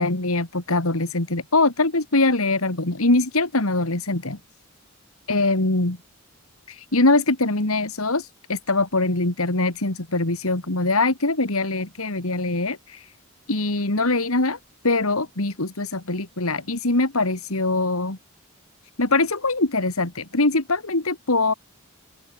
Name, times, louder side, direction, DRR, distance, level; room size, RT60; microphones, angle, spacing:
voice 1, 0.0-4.4 5.3-6.0 6.7-13.1 13.5-14.6 14.8-18.2 19.0-21.5, left 2 dB, 85° left, 2.8 m, -22 dB
open air
head